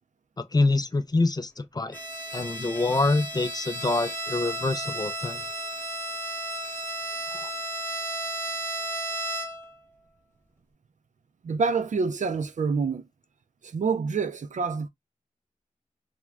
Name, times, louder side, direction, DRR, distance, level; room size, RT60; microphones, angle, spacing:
voice 1, 0.4-2.0 2.3-5.4 7.3-7.5, left 2 dB, 30° left, 0.4 m, -26 dB
Bowed string instrument, 1.9-9.8, right 1 dB, 15° left, 1.0 m, -33 dB
voice 2, 11.4-13.0 13.6-14.9, right 5 dB, 60° right, 0.4 m, -27 dB
2.4 x 2.2 x 3.2 m
cardioid pair, 40°, 14 cm